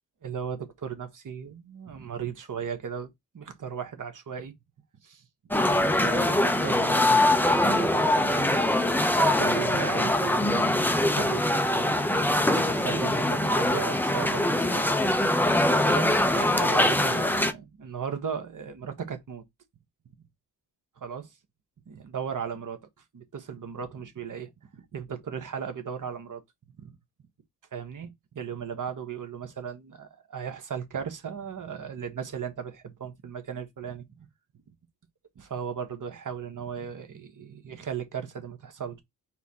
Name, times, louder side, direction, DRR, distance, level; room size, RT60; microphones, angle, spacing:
voice 1, 0.2-3.1 3.3-4.5 5.0-5.2 5.7-8.6 9.4-11.9 12.7-14.9 15.4-15.5 15.8-19.4 21.0-21.3 21.9-22.8 23.1-26.4 26.8-27.0 27.7-34.3 35.4-39.0, right 7 dB, 45° right, 1.2 m, -36 dB
sound 1, 5.5-17.5, left 1 dB, 5° left, 0.6 m, -23 dB
4.5 x 2.2 x 4.1 m
supercardioid pair, 55°, 43 cm